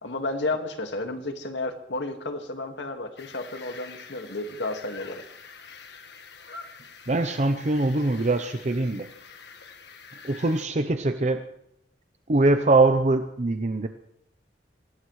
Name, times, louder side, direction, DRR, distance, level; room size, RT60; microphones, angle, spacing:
voice 1, 0.0-5.2, left 2 dB, 85° left, 5 dB, 1.9 m, -32 dB
sound 1, 3.2-10.7, left 5 dB, 70° left, 1.6 m, -46 dB
voice 2, 7.1-9.1 10.2-11.4 12.3-13.9, right 2 dB, 40° right, 7 dB, 0.8 m, -22 dB
24.0 x 17.5 x 3.2 m, 0.76 s
head